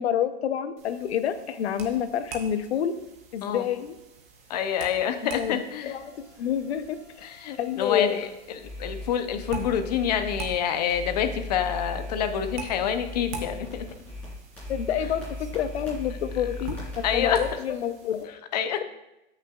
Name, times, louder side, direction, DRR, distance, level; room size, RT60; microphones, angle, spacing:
voice 1, 0.0-3.0 3.3-4.0 5.3-5.6 5.8-7.3 7.6-8.1 14.7-18.3, left 9 dB, 75° left, 11 dB, 0.8 m, -28 dB
sound 1, 0.8-18.2, right 5 dB, 15° right, 0.4 m, -45 dB
voice 2, 4.5-6.0 7.2-13.9 17.0-17.4 18.2-18.9, left 8 dB, 40° left, 9 dB, 0.6 m, -27 dB
sound 2, 5.9-10.5 10.9-17.5, left 2 dB, 5° left, 3.2 m, -39 dB
13.5 x 5.8 x 2.4 m, 0.91 s
supercardioid pair, 175°, 32 cm